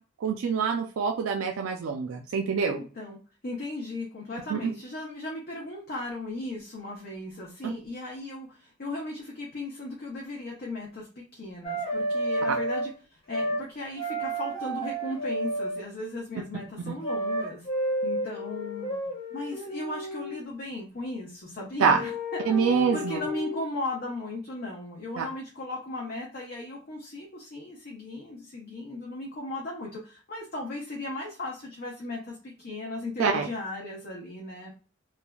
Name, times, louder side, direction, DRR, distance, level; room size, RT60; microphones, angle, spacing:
voice 1, 0.2-2.8 4.5-4.7 7.6-7.7 16.9-17.0 21.8-22.0 22.5-23.2 25.2-25.3 33.2-33.5, right 6 dB, 85° right, 3 dB, 0.4 m, -25 dB
voice 2, 2.6-3.2 3.4-17.7 18.0-22.4 22.7-34.7, left 2 dB, 50° left, -2 dB, 0.7 m, -37 dB
sound 1, 11.6-12.9 13.3-13.6 14.0-15.8 17.0-20.4 21.9-23.6, right 1 dB, 30° left, 1.1 m, -31 dB
3.1 x 2.4 x 2.3 m, 0.37 s
head